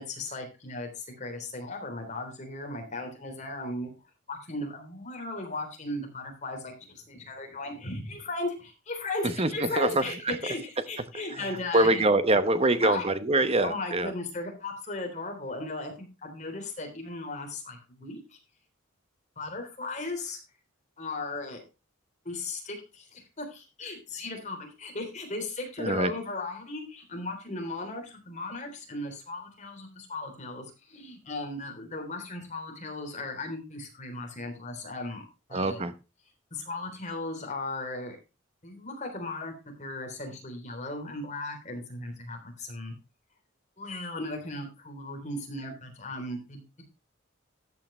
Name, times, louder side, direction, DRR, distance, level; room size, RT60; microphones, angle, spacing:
voice 1, 0.0-3.9 4.3-12.0 12.8-13.0 13.6-18.4 19.4-20.4 21.0-21.6 22.3-35.2 35.5-35.8 36.5-38.2 38.6-39.5 39.8-42.9 43.8-46.8, left 2 dB, 35° left, 3 dB, 3.5 m, -36 dB
voice 2, 9.2-10.4 11.3-14.1 25.8-26.1 35.5-35.9, right 2 dB, 30° right, 11 dB, 1.0 m, -25 dB
13.5 x 8.6 x 3.2 m, 0.28 s
head